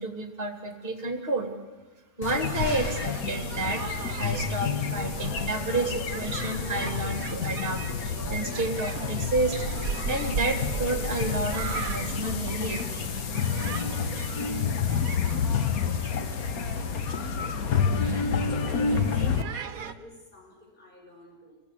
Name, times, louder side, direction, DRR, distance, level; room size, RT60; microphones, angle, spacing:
voice 1, 0.0-1.5 2.2-9.6 10.1-12.8, right 2 dB, 35° right, 4 dB, 2.9 m, -30 dB
sound 1, 2.2-19.4, left 6 dB, 65° left, 1.5 m, -29 dB
sound 2, 2.3-19.9, right 6 dB, 60° right, 1.6 m, -38 dB
voice 2, 17.1-17.7 18.3-21.6, left 1 dB, 30° left, 0 dB, 5.4 m, -51 dB
27.5 x 20.0 x 8.5 m, 1.2 s
omnidirectional pair, 1.7 m